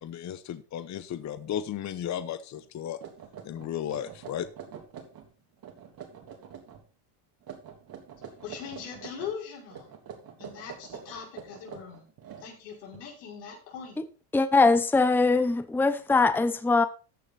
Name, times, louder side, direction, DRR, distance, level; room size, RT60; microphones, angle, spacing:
voice 1, 0.0-3.0 3.4-4.5, left 10 dB, 35° left, 0.9 m, -34 dB
sound 1, 2.6-2.7 3.0-5.3 5.6-6.8 7.4-9.3 9.7-13.0, right 7 dB, 50° right, 3.2 m, -45 dB
voice 2, 8.4-9.9 10.4-12.0 12.4-14.0, left 7 dB, 90° left, 5.8 m, -41 dB
voice 3, 14.3-16.9, left 3 dB, 5° left, 0.7 m, -22 dB
14.0 x 6.6 x 4.3 m
supercardioid pair, 100°, 47 cm